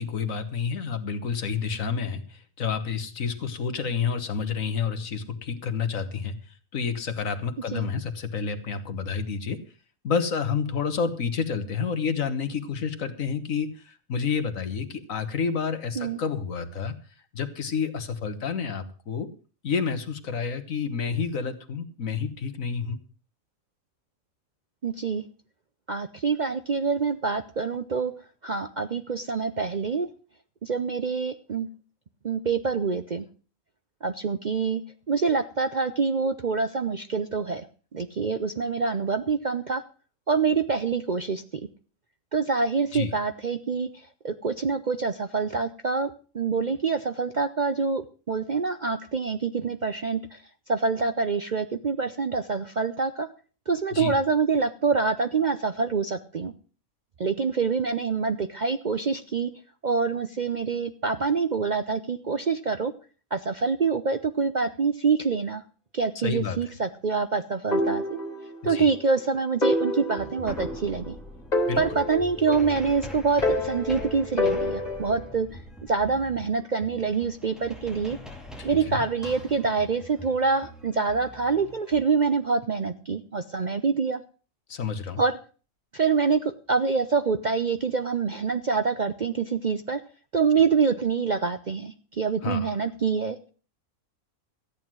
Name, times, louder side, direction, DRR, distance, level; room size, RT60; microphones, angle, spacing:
voice 1, 0.0-9.6 10.0-17.0 17.3-19.3 19.6-23.0 42.9-43.1 53.9-54.1 66.2-66.6 68.6-68.9 71.7-72.0 78.6-79.0 84.7-85.2 92.4-92.7, left 6 dB, 70° left, 9 dB, 1.7 m, -29 dB
voice 2, 24.8-25.2 25.9-28.1 28.4-30.1 30.6-31.7 32.2-33.2 34.0-37.7 37.9-39.8 40.3-41.4 42.3-43.9 44.2-50.4 50.7-53.3 53.7-56.5 57.2-59.5 59.8-62.9 63.3-65.6 65.9-68.2 68.6-71.2 71.8-75.5 75.8-78.2 78.6-84.2 85.2-85.3 85.9-90.0 90.3-93.4, right 5 dB, 45° right, 9 dB, 0.6 m, -26 dB
sound 1, 67.7-68.9 69.2-69.3 69.6-71.1 71.5-73.0 73.4-75.3, left 1 dB, 30° left, 3.4 m, -28 dB
sound 2, 69.7-69.8 70.2-82.0, equal, ahead, 2.3 m, -42 dB
14.0 x 9.3 x 6.1 m, 0.38 s
omnidirectional pair, 1.5 m